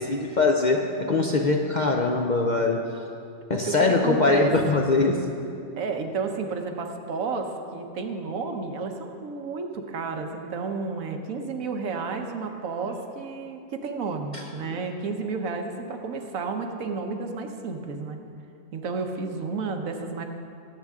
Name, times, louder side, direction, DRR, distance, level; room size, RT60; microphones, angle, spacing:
voice 1, 0.0-2.9 3.5-5.3 14.3-14.4, left 3 dB, 55° left, 2 dB, 0.5 m, -22 dB
voice 2, 3.5-4.5 5.8-18.2 18.7-20.2, right 4 dB, 85° right, 4 dB, 1.3 m, -31 dB
17.5 x 7.8 x 3.6 m, 2.5 s
omnidirectional pair, 1.4 m